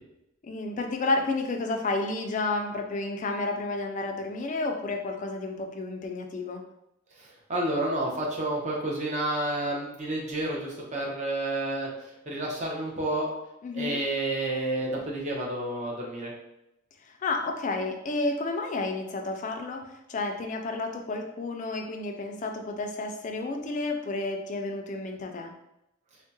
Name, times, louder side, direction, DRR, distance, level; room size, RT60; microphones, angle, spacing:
voice 1, 0.4-6.6 13.6-14.0 17.1-25.5, left 3 dB, 40° left, 4 dB, 0.3 m, -31 dB
voice 2, 7.2-13.3 13.7-16.3, right 1 dB, 35° right, -2 dB, 0.7 m, -30 dB
3.6 x 2.1 x 2.7 m, 0.87 s
head